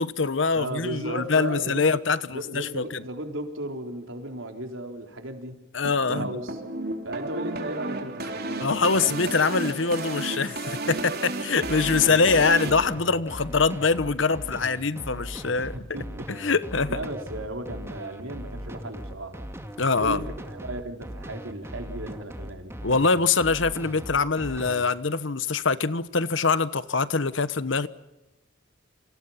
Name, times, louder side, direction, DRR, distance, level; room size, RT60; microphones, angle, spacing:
voice 1, 0.0-3.0 5.7-6.3 8.6-15.7 16.3-17.0 19.8-20.2 22.8-27.9, left 4 dB, 70° left, 1.2 m, -24 dB
voice 2, 0.5-2.0 2.3-5.6 6.1-6.6 7.0-9.2 15.7-16.3 16.9-19.4 20.0-22.8, right 1 dB, 90° right, 4.0 m, -35 dB
sound 1, 5.8-12.7, right 2 dB, 50° right, 3.9 m, -33 dB
sound 2, 11.6-24.8, equal, 15° right, 2.3 m, -38 dB
30.0 x 26.0 x 5.8 m
head